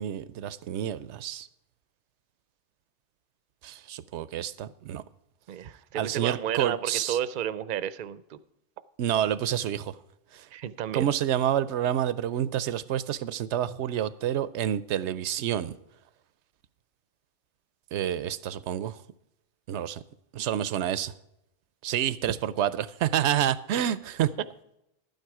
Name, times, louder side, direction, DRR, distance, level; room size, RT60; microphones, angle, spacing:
voice 1, 0.0-1.5 3.6-5.0 5.9-7.2 9.0-9.9 10.3-10.5 10.9-15.7 17.9-19.0 19.7-20.0 20.3-21.1 21.8-24.3, right 10 dB, 85° right, 0.9 m, -28 dB
voice 2, 5.5-8.4 10.5-11.1, right 10 dB, 55° right, 0.6 m, -32 dB
12.0 x 9.3 x 4.8 m
omnidirectional pair, 1.1 m